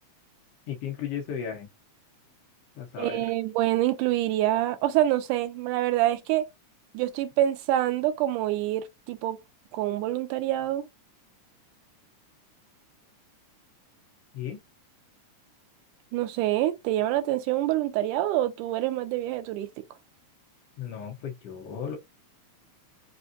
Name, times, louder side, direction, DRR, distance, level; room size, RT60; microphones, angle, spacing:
voice 1, 0.7-1.7 2.8-3.3 14.3-14.6 20.8-22.0, left 8 dB, 70° left, 1.5 m, -35 dB
voice 2, 3.0-6.5 6.9-9.4 9.7-10.9 16.1-19.7, right 13 dB, 85° right, 2.2 m, -26 dB
5.2 x 3.5 x 2.6 m
omnidirectional pair, 3.6 m